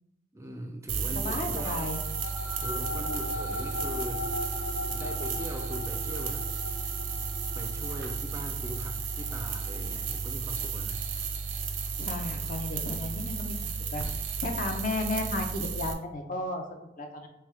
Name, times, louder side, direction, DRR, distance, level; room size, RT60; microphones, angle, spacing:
voice 1, 0.3-1.8 2.6-4.3 4.9-6.5 7.5-11.3, right 1 dB, 15° right, 3 dB, 0.3 m, -40 dB
sound 1, 0.9-15.9, right 5 dB, 85° right, 0.5 m, -33 dB
voice 2, 1.1-2.0 12.0-14.0 14.4-17.3, left 2 dB, 45° left, 3 dB, 0.5 m, -34 dB
sound 2, 1.7-12.5, left 2 dB, 70° left, 0.9 m, -39 dB
3.4 x 3.2 x 3.4 m, 0.91 s
head